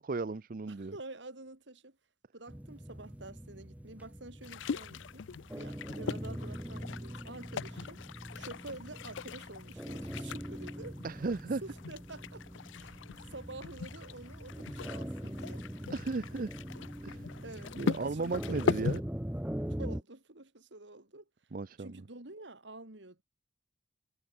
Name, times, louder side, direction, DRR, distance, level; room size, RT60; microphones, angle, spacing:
voice 1, 0.0-0.9 11.0-11.6 15.9-16.5 17.0-17.2 17.7-19.0 21.5-22.0, right 3 dB, 45° right, 0.5 m, -35 dB
voice 2, 0.7-2.0 2.3-5.3 5.5-8.0 8.3-11.0 11.6-12.5 12.8-13.0 13.3-15.7 17.4-19.0 19.7-21.2 21.8-23.2, right 2 dB, 65° right, 2.7 m, -48 dB
sound 1, 2.5-20.0, equal, 10° right, 0.8 m, -42 dB
sound 2, 4.4-19.0, left 5 dB, 75° left, 0.5 m, -40 dB
head